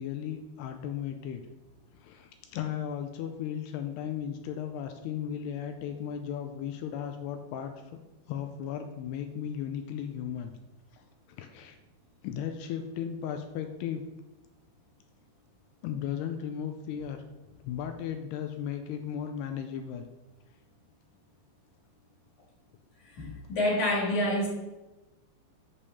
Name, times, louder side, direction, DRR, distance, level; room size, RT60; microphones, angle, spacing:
voice 1, 0.0-1.4 1.9-7.7 8.3-10.5 10.9-11.0 11.4-11.8 12.2-14.0 15.8-17.2 17.6-20.1, left 9 dB, 80° left, 6 dB, 2.6 m, -36 dB
voice 2, 23.2-24.5, left 1 dB, 50° left, -2 dB, 3.1 m, -27 dB
8.4 x 5.3 x 6.9 m, 1.1 s
omnidirectional pair, 5.0 m